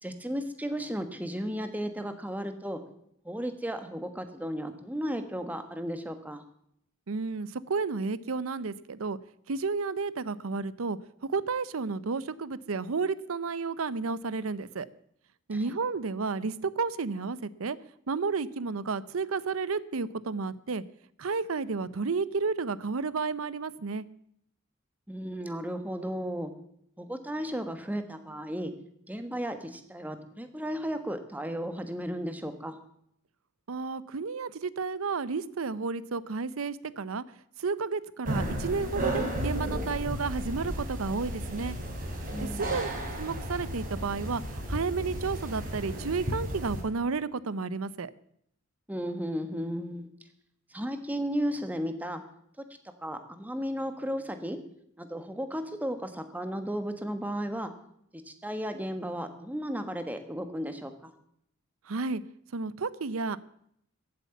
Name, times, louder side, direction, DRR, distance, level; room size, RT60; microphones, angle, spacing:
voice 1, 0.0-2.8 3.2-6.4 15.5-15.7 25.1-26.5 27.0-28.7 29.1-32.8 42.3-42.7 48.9-50.1 50.7-52.2 53.0-54.6 55.0-57.7 58.1-61.1, equal, 10° right, 8 dB, 1.3 m, -34 dB
voice 2, 7.1-9.2 9.5-14.9 15.5-17.8 18.1-20.8 21.2-24.0 33.7-37.2 37.6-41.8 42.4-42.9 43.2-48.1 61.9-62.2 62.5-63.4, right 4 dB, 90° right, 18 dB, 0.7 m, -32 dB
sound 1, 38.2-46.8, right 1 dB, 45° right, 3.2 m, -34 dB
14.5 x 8.7 x 7.0 m, 0.71 s
head